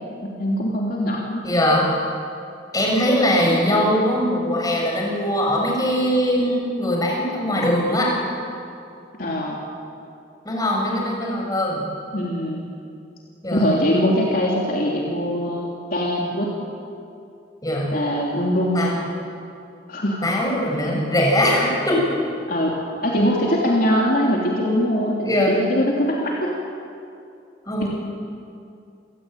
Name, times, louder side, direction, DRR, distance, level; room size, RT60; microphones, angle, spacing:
voice 1, 0.2-1.4 9.2-9.6 12.1-12.6 13.5-16.5 17.9-19.0 19.9-20.3 22.5-22.8 23.0-26.5 27.8-27.9, equal, 55° left, -3 dB, 3.3 m, -22 dB
voice 2, 1.4-2.0 2.7-8.1 10.4-11.8 13.4-13.6 17.6-17.9 18.7-18.9 20.2-22.0 25.2-25.6 27.7-27.9, equal, 20° left, -2 dB, 6.7 m, -21 dB
29.0 x 17.5 x 9.3 m, 2.5 s
head